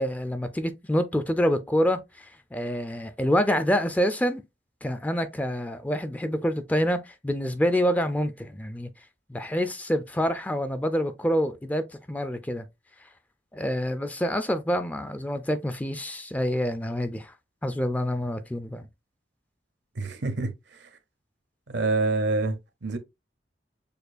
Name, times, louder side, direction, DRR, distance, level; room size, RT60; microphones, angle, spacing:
voice 1, 0.0-4.4 4.8-8.9 9.3-12.7 13.5-17.3 17.6-18.9, equal, 10° left, 0.3 m, -27 dB
voice 2, 20.0-20.5 20.8-20.9 21.7-23.0, right 3 dB, 70° right, 0.7 m, -27 dB
6.6 x 2.4 x 2.4 m
head